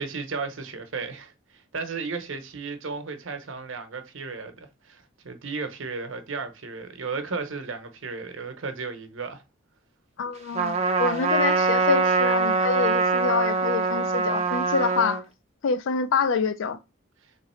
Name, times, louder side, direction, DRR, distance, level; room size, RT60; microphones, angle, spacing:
voice 1, 0.0-9.4, right 4 dB, 75° right, 0.8 m, -34 dB
voice 2, 10.2-15.2 15.6-16.8, left 5 dB, 75° left, 0.4 m, -26 dB
Trumpet, 10.6-15.2, right 4 dB, 30° right, 0.6 m, -23 dB
3.8 x 3.0 x 4.3 m
head